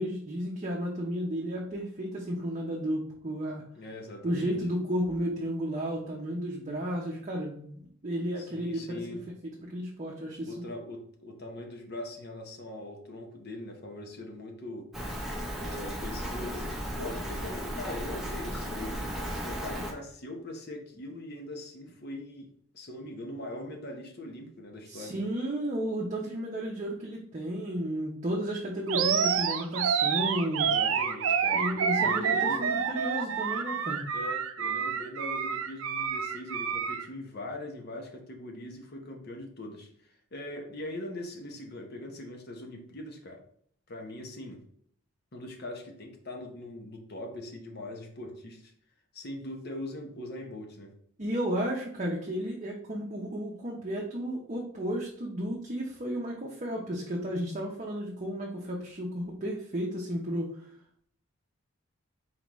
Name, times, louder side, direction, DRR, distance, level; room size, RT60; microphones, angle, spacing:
voice 1, 0.0-3.6 4.2-10.7 24.9-30.7 31.5-34.1 51.2-60.7, equal, 35° right, -2 dB, 0.7 m, -33 dB
voice 2, 3.7-4.6 8.4-9.2 10.5-14.9 15.5-19.2 19.4-25.1 30.6-31.7 32.0-32.6 34.1-43.4 43.9-44.6 45.3-48.7 49.1-50.9, left 1 dB, 50° left, 3 dB, 0.9 m, -41 dB
Rain, 14.9-19.9, equal, ahead, 0.9 m, -35 dB
Animal, 28.9-37.1, right 6 dB, 75° right, 0.5 m, -28 dB
4.4 x 3.8 x 3.0 m, 0.64 s
head